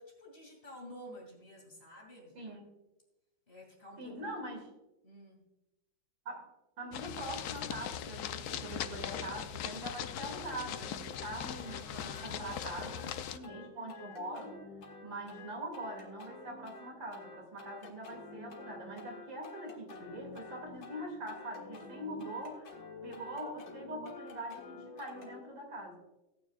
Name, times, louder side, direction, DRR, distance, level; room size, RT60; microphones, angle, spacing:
voice 1, 0.0-2.4 3.5-4.5 5.0-5.5 11.8-13.6 23.1-23.4, left 1 dB, 30° left, -1 dB, 2.6 m, -52 dB
voice 2, 2.3-2.7 4.0-4.7 6.2-6.5 6.8-14.6 15.0-22.8 23.0-26.0, right 1 dB, 60° right, 1 dB, 3.1 m, -43 dB
sound 1, 6.9-13.4, left 10 dB, 90° left, 0.8 m, -40 dB
sound 2, 10.7-25.4, left 4 dB, 50° left, 2.0 m, -50 dB
17.0 x 9.2 x 2.4 m, 0.98 s
omnidirectional pair, 2.3 m